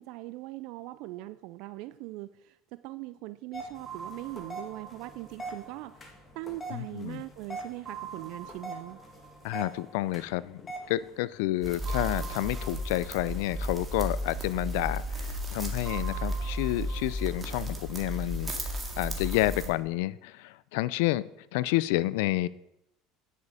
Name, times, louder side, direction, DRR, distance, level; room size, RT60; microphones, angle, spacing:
voice 1, 0.0-5.9 6.4-9.0, right 18 dB, 70° right, 14 dB, 0.3 m, -41 dB
sound 1, 3.5-11.8, right 2 dB, 25° left, 2.2 m, -44 dB
sound 2, 3.9-7.2 7.9-10.8 11.9-15.0 15.9-19.0, right 8 dB, 40° right, 2.9 m, -47 dB
voice 2, 6.7-7.2 9.4-10.6 10.9-18.5 19.0-21.2 21.5-22.5, left 17 dB, 75° left, 19 dB, 0.4 m, -30 dB
sound 3, 11.6-19.7, equal, 25° right, 2.0 m, -34 dB
9.7 x 6.9 x 4.9 m, 0.84 s
supercardioid pair, 90°, 0 cm